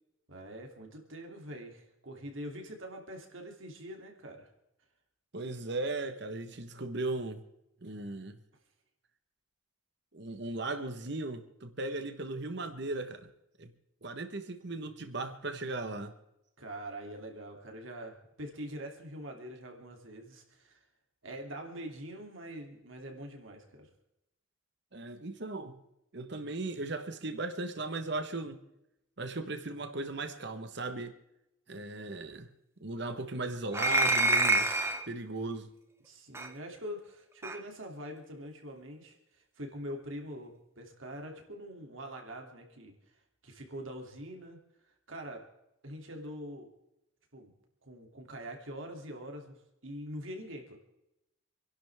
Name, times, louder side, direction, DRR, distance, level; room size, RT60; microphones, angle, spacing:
voice 1, 0.3-4.5 16.6-20.8 21.2-23.9 36.0-42.9 43.4-44.6 45.1-45.4 45.8-46.7 47.3-47.5 47.8-50.8, equal, 75° right, 2 dB, 3.0 m, -44 dB
voice 2, 5.3-7.4 7.8-8.4 10.1-13.3 13.6-13.7 14.0-16.1 24.9-25.8 26.1-28.6 29.2-31.1 31.7-32.5 32.8-35.7, right 2 dB, 55° right, 8 dB, 1.3 m, -37 dB
sound 1, 33.7-35.1 36.3-36.5 37.4-37.6, right 2 dB, 15° right, 0.9 m, -26 dB
28.0 x 11.5 x 3.6 m, 0.88 s
head